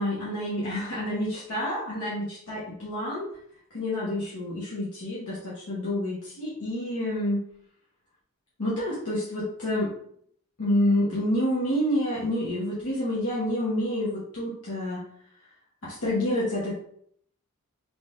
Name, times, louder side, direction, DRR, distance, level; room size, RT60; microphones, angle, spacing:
voice 1, 0.0-3.3 3.7-7.4 8.6-9.9 10.6-15.0 15.8-16.8, left 1 dB, 75° left, -8 dB, 1.1 m, -28 dB
3.7 x 3.3 x 2.5 m, 0.66 s
head